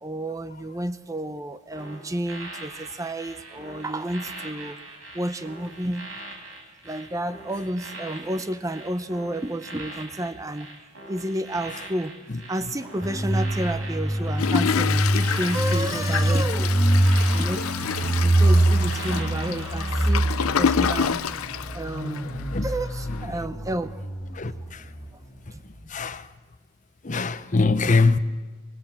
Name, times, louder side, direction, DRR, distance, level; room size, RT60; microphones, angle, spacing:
voice 1, 0.0-4.8 5.1-6.1 6.8-10.7 11.1-12.1 12.5-16.8 17.3-17.7 18.2-21.2 21.7-22.3 22.6-24.0 25.5-25.6, right 1 dB, 15° right, 0.7 m, -31 dB
sound 1, 1.7-20.9 21.2-21.5, right 2 dB, 75° right, 5.7 m, -42 dB
sound 2, 13.0-25.4 25.7-25.8, right 1 dB, 10° left, 4.5 m, -24 dB
Toilet flush, 14.4-22.4 22.9-23.0 23.2-23.3, left 7 dB, 90° left, 0.6 m, -28 dB
voice 2, 25.9-26.2 27.0-28.2, left 3 dB, 35° left, 0.8 m, -22 dB
25.0 x 18.0 x 7.6 m
head